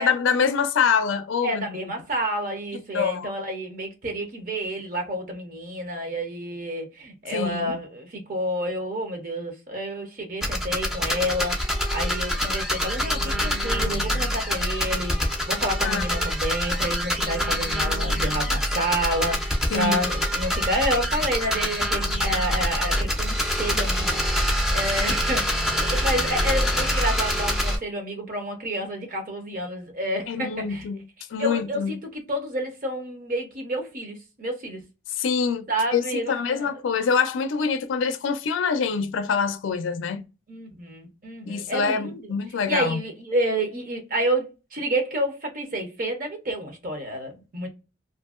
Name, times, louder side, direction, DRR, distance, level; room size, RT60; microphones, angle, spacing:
voice 1, 0.0-1.6 2.7-3.3 7.3-7.8 15.8-16.0 19.7-20.0 30.3-31.0 31.3-32.0 35.1-40.2 41.5-43.0, left 6 dB, 85° left, 0.4 m, -25 dB
voice 2, 1.4-30.9 31.4-34.8 35.7-36.8 40.5-42.3 42.7-47.7, right 1 dB, 45° right, 0.7 m, -29 dB
sound 1, 10.4-27.8, equal, 5° right, 0.4 m, -25 dB
2.7 x 2.6 x 2.4 m
head